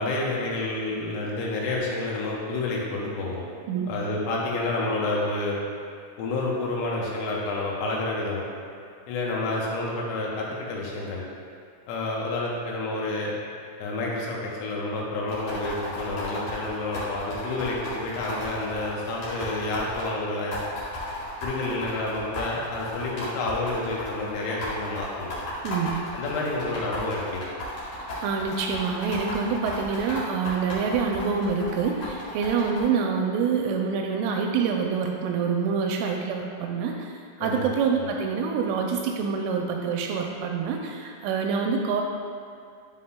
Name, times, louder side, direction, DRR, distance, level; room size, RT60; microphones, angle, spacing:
voice 1, 0.0-3.5 3.9-5.6 6.2-8.5 9.1-11.2 11.9-13.3 13.8-20.6 21.4-25.3 26.1-27.5 37.4-37.7 38.0-38.1, left 2 dB, 85° left, -3 dB, 3.5 m, -29 dB
sound 1, 15.3-20.1 20.5-32.8, left 1 dB, 55° left, 2.0 m, -35 dB
voice 2, 25.6-26.2 28.0-37.1 37.4-42.0, right 5 dB, 85° right, 2 dB, 2.9 m, -26 dB
9.9 x 5.6 x 2.2 m, 2.4 s
omnidirectional pair, 5.8 m